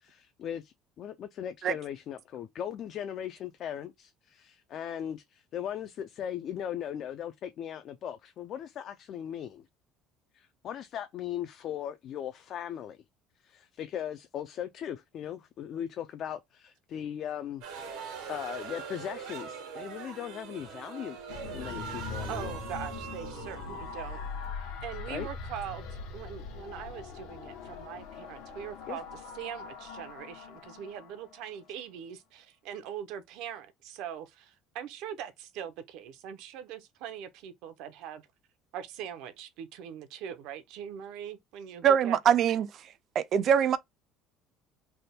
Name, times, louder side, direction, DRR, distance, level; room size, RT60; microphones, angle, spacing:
voice 1, 0.0-9.7 10.3-13.0 13.4-17.6 18.0-21.2 21.5-22.6 25.1-25.3 28.9-29.0, left 10 dB, 45° left, 0.4 m, -38 dB
sound 1, 17.6-24.8, right 6 dB, 90° right, 1.3 m, -42 dB
sound 2, 21.3-31.7, left 4 dB, 85° left, 1.0 m, -42 dB
voice 2, 22.3-24.2 24.8-38.2 38.7-42.2, right 9 dB, 75° right, 0.7 m, -42 dB
voice 3, 41.8-42.7 43.2-43.8, right 8 dB, 40° right, 0.4 m, -23 dB
3.4 x 2.2 x 4.2 m
cardioid pair, 150°, 0 cm